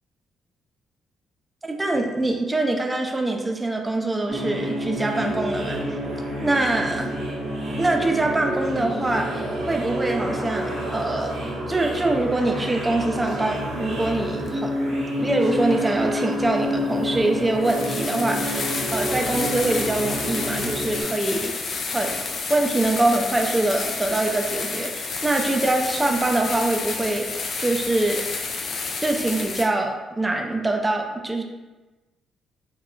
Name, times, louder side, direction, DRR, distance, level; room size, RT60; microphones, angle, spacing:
voice 1, 1.6-6.0 6.4-7.1 7.8-11.3 11.7-21.7 21.9-22.2 22.5-28.2 29.0-31.4, right 2 dB, 15° right, 2 dB, 0.4 m, -24 dB
sound 1, 4.3-21.0, equal, 70° right, 0.8 m, -28 dB
sound 2, 14.5-14.6 16.3-16.4 17.0-17.1 17.6-29.6, left 4 dB, 55° left, 0.4 m, -30 dB
3.6 x 2.0 x 2.2 m, 1.2 s
cardioid pair, 90°, 0 cm